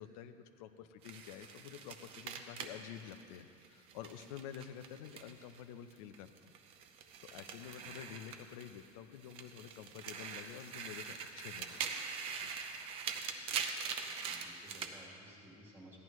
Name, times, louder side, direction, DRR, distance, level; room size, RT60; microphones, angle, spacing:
voice 1, 0.0-6.5 7.3-11.8 12.4-12.5, left 10 dB, 85° left, 10 dB, 0.7 m, -49 dB
sound 1, 1.0-5.6 5.9-8.9 9.2-14.9, right 6 dB, 30° right, 0.6 m, -43 dB
voice 2, 14.2-16.0, right 1 dB, 10° right, -4 dB, 1.5 m, -57 dB
15.5 x 10.5 x 3.1 m, 2.5 s
cardioid pair, 175°, 18 cm